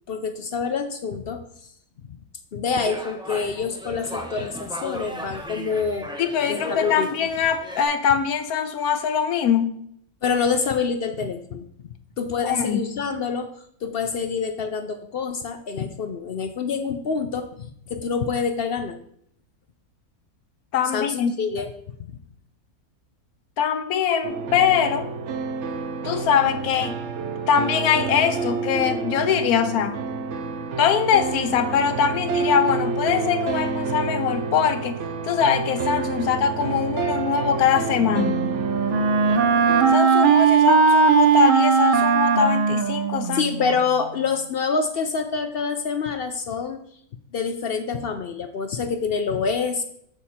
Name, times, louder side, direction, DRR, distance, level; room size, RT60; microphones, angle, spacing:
voice 1, 0.1-1.4 2.1-2.2 2.5-6.1 6.5-7.1 10.2-11.7 12.2-13.5 13.8-19.0 20.9-21.7 22.0-22.1 43.3-46.8 47.3-49.8, left 5 dB, 60° left, 7 dB, 0.6 m, -26 dB
sound 1, 2.7-7.8, equal, 5° right, 0.7 m, -36 dB
voice 2, 6.2-9.7 12.4-12.9 20.7-21.4 23.6-25.1 26.0-27.0 27.5-30.0 30.8-38.4 39.9-43.4, left 7 dB, 90° left, 8 dB, 1.1 m, -22 dB
sound 2, 24.2-40.0, right 4 dB, 60° right, 0.9 m, -29 dB
Wind instrument woodwind instrument, 38.0-43.8, right 5 dB, 80° right, 0.4 m, -19 dB
6.7 x 6.5 x 4.2 m, 0.68 s
omnidirectional pair, 1.5 m